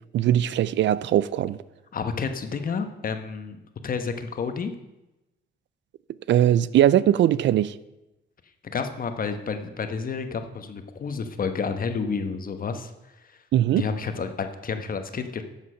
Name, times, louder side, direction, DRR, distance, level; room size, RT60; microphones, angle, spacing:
voice 1, 0.1-1.6 6.3-7.8 13.5-13.9, right 11 dB, 65° right, 18 dB, 0.5 m, -20 dB
voice 2, 1.9-4.7 8.6-12.9 13.7-15.4, left 5 dB, 45° left, 8 dB, 1.3 m, -30 dB
13.0 x 7.3 x 5.7 m, 0.98 s
cardioid pair, 90°, 20 cm